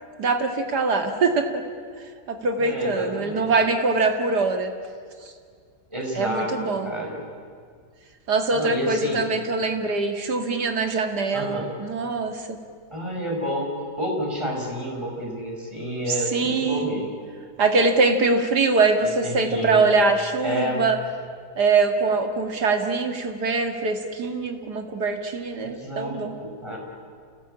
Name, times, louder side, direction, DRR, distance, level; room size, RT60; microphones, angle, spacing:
voice 1, 0.2-1.6 2.3-4.7 5.2-5.3 6.1-6.9 8.3-12.6 16.3-17.0 17.6-21.0 21.6-26.3, right 3 dB, 80° right, 5 dB, 2.6 m, -23 dB
voice 2, 2.6-3.5 5.9-6.5 6.8-7.2 8.5-9.2 11.3-11.7 12.9-13.7 14.0-17.1 19.0-19.8 20.4-20.9 25.6-26.8, equal, 15° right, -1 dB, 5.4 m, -29 dB
29.0 x 18.0 x 8.8 m, 2.1 s
omnidirectional pair, 1.7 m